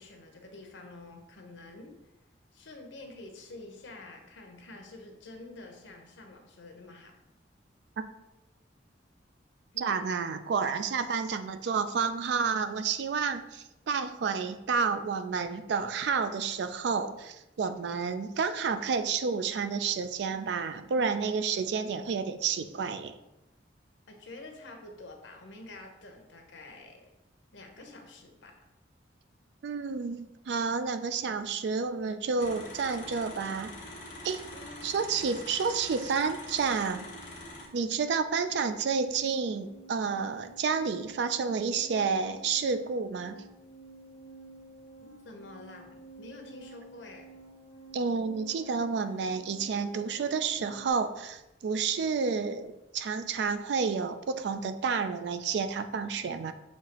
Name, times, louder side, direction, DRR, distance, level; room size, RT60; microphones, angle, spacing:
voice 1, 0.0-1.9 2.5-7.1 9.7-10.0 24.1-27.1 27.5-28.6 34.5-34.9 45.0-47.3 52.0-52.1, left 2 dB, 85° left, 4 dB, 0.8 m, -48 dB
voice 2, 9.8-23.2 29.6-33.7 34.2-34.4 34.8-37.1 37.7-43.4 47.9-56.5, right 5 dB, 70° right, 10 dB, 0.3 m, -30 dB
sound 1, 32.4-37.7, left 1 dB, 45° left, 1.1 m, -44 dB
sound 2, 37.4-50.9, right 2 dB, 10° left, 1.4 m, -52 dB
6.4 x 2.8 x 2.9 m, 0.94 s
head